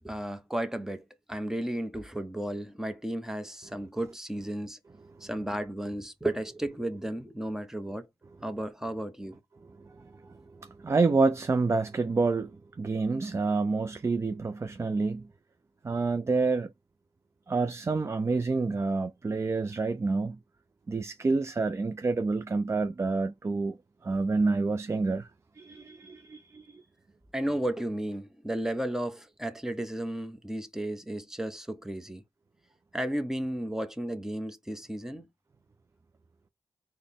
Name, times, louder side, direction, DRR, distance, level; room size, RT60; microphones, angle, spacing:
voice 1, 0.0-4.8 5.2-8.1 8.4-9.4 27.3-32.2 32.9-35.3, right 1 dB, 5° right, 0.7 m, -33 dB
voice 2, 9.7-15.3 15.8-16.7 17.5-20.4 20.9-23.8 24.0-25.3 25.6-26.8, right 3 dB, 30° right, 0.3 m, -28 dB
4.0 x 2.1 x 3.4 m
cardioid pair, 70°, 10 cm